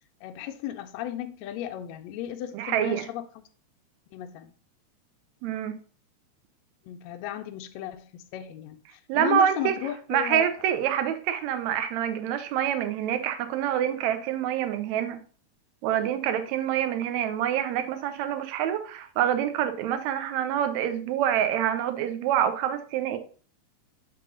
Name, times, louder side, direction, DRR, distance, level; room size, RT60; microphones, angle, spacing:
voice 1, 0.2-3.4 4.1-4.5 6.9-10.5, left 11 dB, 80° left, 1.6 m, -35 dB
voice 2, 2.5-3.1 5.4-5.8 9.1-9.7 10.1-15.2 15.8-23.2, right 10 dB, 75° right, 1.9 m, -26 dB
7.5 x 3.8 x 3.9 m
omnidirectional pair, 3.5 m